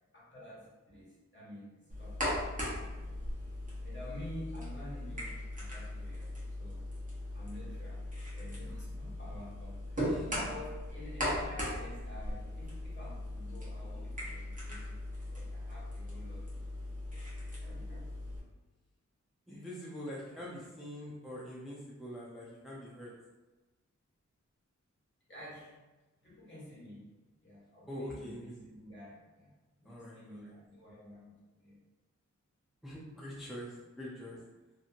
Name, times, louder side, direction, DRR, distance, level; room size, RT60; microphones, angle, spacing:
voice 1, 0.1-3.2 3.8-6.3 6.6-6.8 7.3-8.0 8.3-15.0 15.3-16.7 17.1-18.1 19.5-19.7 20.3-20.7 25.3-25.8 26.2-27.1 27.4-31.8, left 1 dB, 40° left, -8 dB, 1.3 m, -50 dB
sound 1, 1.9-18.4, left 1 dB, 25° right, 0.9 m, -39 dB
voice 2, 19.5-23.1 27.9-28.5 29.9-30.2 32.8-34.4, equal, ahead, -6 dB, 0.5 m, -44 dB
2.7 x 2.7 x 2.4 m, 1.1 s
wide cardioid pair, 65°, 30 cm